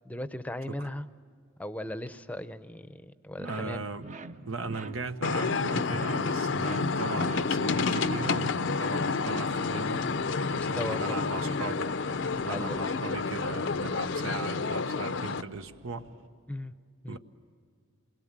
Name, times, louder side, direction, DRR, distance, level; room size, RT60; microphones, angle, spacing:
voice 1, 0.1-1.1 1.6-3.8 10.5-11.2 12.3-12.9 16.5-16.8 17.0-17.2, left 1 dB, 5° left, 12 dB, 0.7 m, -37 dB
sound 1, 3.4-8.5, right 2 dB, 35° right, 0.7 m, -44 dB
voice 2, 3.4-4.1 4.4-10.1 10.7-11.9 12.4-16.1 17.1-17.2, right 3 dB, 85° right, 8 dB, 1.2 m, -38 dB
sound 2, 5.2-15.4, left 4 dB, 60° left, 0.6 m, -29 dB
sound 3, 6.0-16.3, right 1 dB, 65° right, 2.4 m, -58 dB
28.0 x 21.5 x 7.5 m, 2.1 s
head